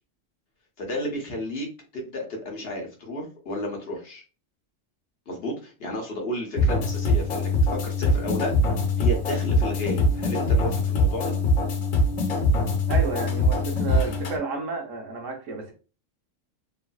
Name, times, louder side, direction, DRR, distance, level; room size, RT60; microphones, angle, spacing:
voice 1, 0.8-1.7 1.9-4.2 5.3-8.5 9.0-11.4, left 1 dB, 55° left, 1.0 m, -32 dB
sound 1, 6.6-14.4, left 1 dB, 85° left, 1.1 m, -23 dB
voice 2, 12.9-15.7, right 3 dB, 80° right, 1.1 m, -31 dB
3.0 x 2.5 x 2.2 m
omnidirectional pair, 1.3 m